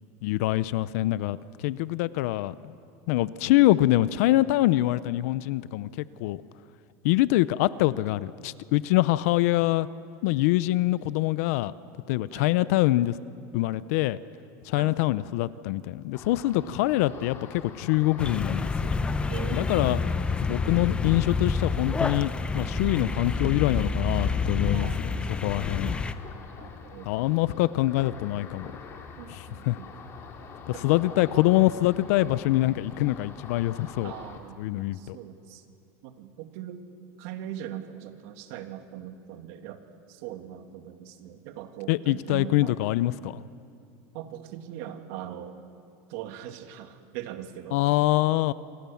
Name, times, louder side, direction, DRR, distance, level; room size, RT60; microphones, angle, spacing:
voice 1, 0.2-2.7 3.1-6.4 7.0-9.9 10.2-11.7 12.1-13.2 13.5-14.2 14.6-18.9 19.5-20.0 20.4-26.0 27.1-28.7 29.3-29.8 30.7-34.1 34.6-35.2 41.9-43.4 47.7-48.5, left 17 dB, 65° left, 17 dB, 0.7 m, -25 dB
Ocean, 16.1-34.4, left 5 dB, 30° left, 3.1 m, -46 dB
sound 1, 18.2-26.1, left 4 dB, 10° left, 0.8 m, -28 dB
voice 2, 19.3-19.9 24.7-25.4 26.6-27.1 29.2-29.9 30.7-30.8 31.2-31.3 34.0-35.6 36.0-36.8 37.2-42.7 44.1-45.6 46.1-47.8, right 11 dB, 60° right, 7 dB, 2.2 m, -41 dB
28.0 x 24.0 x 7.2 m, 2.5 s
supercardioid pair, 155°, 9 cm